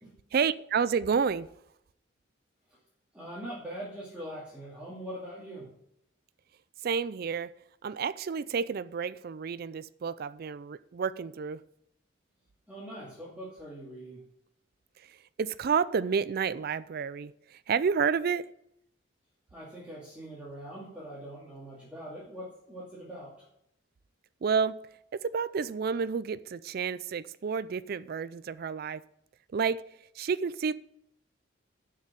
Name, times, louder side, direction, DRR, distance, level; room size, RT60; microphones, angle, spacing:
voice 1, 0.3-1.5 6.8-7.5 7.8-11.6 15.1-18.5 24.4-24.7 25.1-29.0 29.5-29.8 30.2-30.7, right 6 dB, 50° right, 0.4 m, -30 dB
voice 2, 3.1-5.7 12.7-14.2 19.5-23.5, equal, 5° right, 2.3 m, -42 dB
7.0 x 6.6 x 7.4 m
head